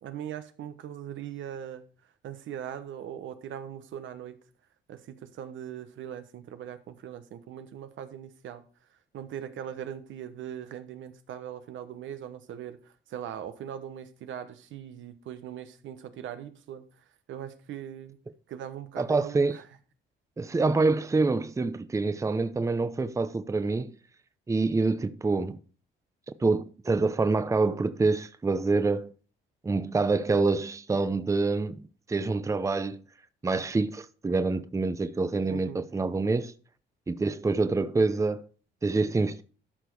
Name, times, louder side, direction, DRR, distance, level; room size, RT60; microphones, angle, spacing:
voice 1, 0.0-1.8 2.2-4.4 4.9-8.6 9.1-16.8 17.3-18.2 18.5-19.6 35.5-35.9, right 10 dB, 75° right, 1.1 m, -40 dB
voice 2, 19.0-19.6 20.4-23.9 24.5-25.6 26.4-29.1 29.6-31.8 32.1-33.0 33.4-36.5 37.1-38.4 38.8-39.4, right 3 dB, 15° right, 0.6 m, -26 dB
12.5 x 5.1 x 4.6 m
cardioid pair, 90°, 20 cm